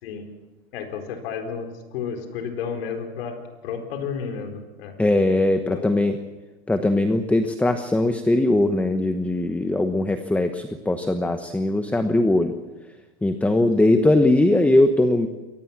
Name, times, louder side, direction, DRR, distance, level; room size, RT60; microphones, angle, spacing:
voice 1, 0.7-3.4 3.6-4.9 5.6-5.8 13.8-13.9, left 6 dB, 70° left, 4 dB, 4.7 m, -32 dB
voice 2, 5.0-6.2 6.7-12.5 13.2-15.3, left 2 dB, 5° left, 8 dB, 1.1 m, -20 dB
23.0 x 18.5 x 7.4 m, 1.1 s
supercardioid pair, 125°, 31 cm